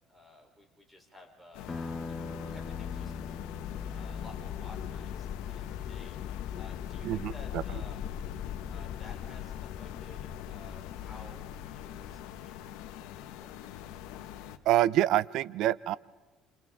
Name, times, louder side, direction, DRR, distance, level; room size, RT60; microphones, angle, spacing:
voice 1, 0.1-1.7 2.1-3.1 3.9-6.2 6.5-8.1 8.7-12.8 13.1-13.8, left 2 dB, 5° right, 2 dB, 3.7 m, -54 dB
sound 1, 1.5-14.6, left 11 dB, 85° left, 1.3 m, -44 dB
sound 2, 1.7-6.8, left 3 dB, 20° left, 0.7 m, -43 dB
sound 3, 2.3-12.9, left 9 dB, 50° left, 0.5 m, -41 dB
voice 2, 7.0-7.6 14.6-16.0, right 13 dB, 65° right, 19 dB, 0.6 m, -26 dB
28.5 x 28.0 x 3.6 m, 1.3 s
cardioid pair, 125°, 0 cm